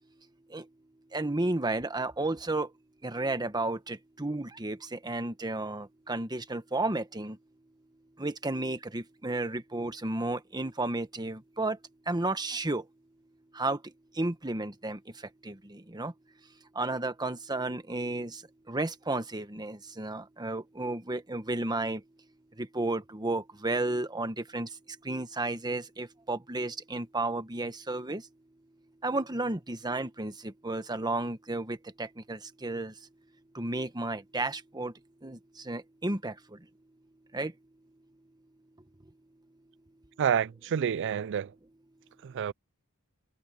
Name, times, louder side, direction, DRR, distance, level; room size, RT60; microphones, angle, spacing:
voice 1, 1.1-2.7 3.0-7.4 8.2-11.8 12.1-12.9 13.5-16.1 16.7-22.0 22.6-28.3 29.0-33.0 33.5-34.9 35.2-36.7 37.3-37.5, right 2 dB, 20° right, 1.3 m, -33 dB
voice 2, 40.2-41.5 42.2-42.5, right 8 dB, 55° right, 0.4 m, -28 dB
head